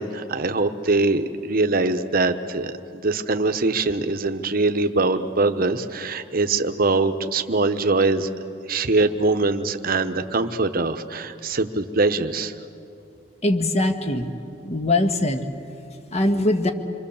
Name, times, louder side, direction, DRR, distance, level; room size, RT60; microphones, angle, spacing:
voice 1, 0.0-8.3 8.7-12.5, right 3 dB, 50° right, 9 dB, 1.0 m, -23 dB
voice 2, 13.4-14.3 14.6-15.4 16.1-16.7, left 1 dB, 35° left, 7 dB, 1.4 m, -21 dB
27.5 x 23.0 x 7.2 m, 2.7 s
head